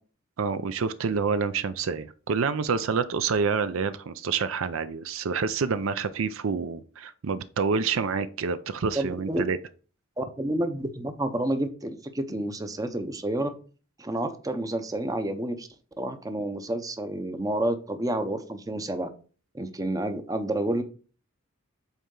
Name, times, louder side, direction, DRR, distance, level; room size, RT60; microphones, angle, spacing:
voice 1, 0.4-9.6, right 5 dB, 65° right, 0.4 m, -28 dB
voice 2, 8.9-9.4 10.2-13.5 14.0-15.7 16.0-19.1 19.5-20.8, right 1 dB, 15° right, 0.6 m, -29 dB
8.2 x 4.3 x 3.8 m
head